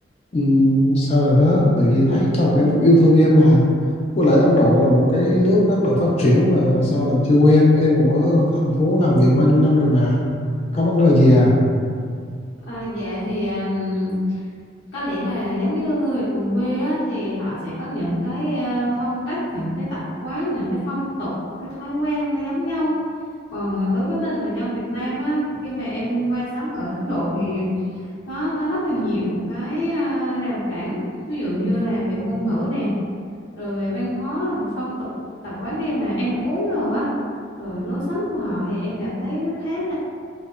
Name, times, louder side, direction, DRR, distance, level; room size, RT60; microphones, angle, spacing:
voice 1, 0.3-3.6 4.2-10.2 10.7-11.6, left 1 dB, 35° left, -4 dB, 0.4 m, -16 dB
voice 2, 12.6-14.4 14.9-21.3 21.6-22.9 23.5-27.7 28.3-31.0 31.3-32.9 33.5-35.1 35.4-37.1 37.6-39.9, equal, 60° left, -12 dB, 0.8 m, -25 dB
2.8 x 2.0 x 2.3 m, 2.1 s
head